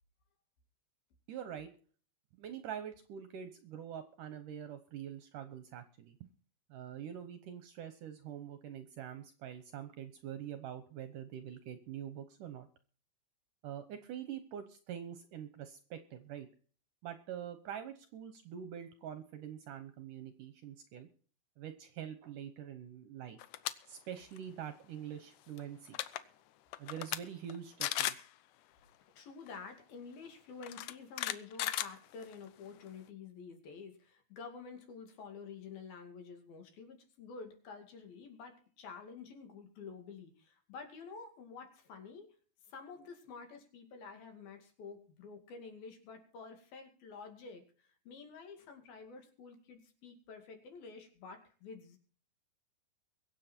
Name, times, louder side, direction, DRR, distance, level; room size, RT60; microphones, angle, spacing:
voice 1, 1.3-1.7 2.3-6.3 6.7-12.7 13.6-16.5 17.0-21.1 21.6-23.4 23.9-26.0 26.8-28.3, right 9 dB, 70° right, 10 dB, 2.1 m, -45 dB
sound 1, 23.4-23.7 24.1-24.4 25.6-25.7 25.9-26.2 26.7-27.2 27.5-27.6 27.8-28.3 29.5-29.6 30.6-32.5, left 14 dB, 80° left, 1.8 m, -36 dB
voice 2, 29.2-42.3 42.7-52.0, left 5 dB, 65° left, 5 dB, 4.1 m, -50 dB
23.0 x 8.0 x 4.4 m, 0.42 s
omnidirectional pair, 4.7 m